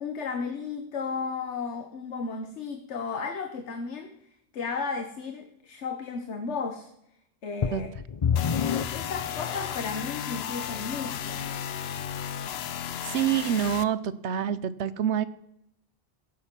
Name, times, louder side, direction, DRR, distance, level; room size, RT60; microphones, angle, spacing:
voice 1, 0.0-6.9 7.4-7.9 8.9-11.5, left 5 dB, 85° left, 7 dB, 1.4 m, -34 dB
sound 1, 7.6-10.0 10.7-10.8 11.4-11.5, left 7 dB, 40° left, 0.5 m, -29 dB
sound 2, 8.4-13.8, left 9 dB, 70° left, 0.9 m, -34 dB
voice 2, 13.0-15.2, right 9 dB, 80° right, 16 dB, 1.0 m, -27 dB
15.5 x 10.0 x 6.0 m, 0.79 s
omnidirectional pair, 1.1 m